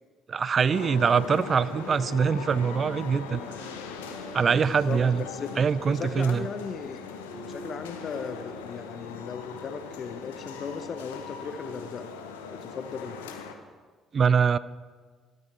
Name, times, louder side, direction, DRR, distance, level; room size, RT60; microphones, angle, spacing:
voice 1, 0.3-3.7 4.3-5.2 5.6-6.5 14.1-14.6, right 6 dB, 45° right, 18 dB, 0.3 m, -24 dB
sound 1, 0.7-13.5, left 6 dB, 85° left, 0.7 m, -40 dB
sound 2, 1.2-8.7, right 2 dB, 5° right, 3.8 m, -48 dB
voice 2, 4.7-5.6 5.9-7.0 7.3-12.1 12.5-13.2, left 5 dB, 50° left, 10 dB, 0.7 m, -37 dB
12.5 x 8.3 x 4.3 m, 1.5 s
hypercardioid pair, 50°, 0 cm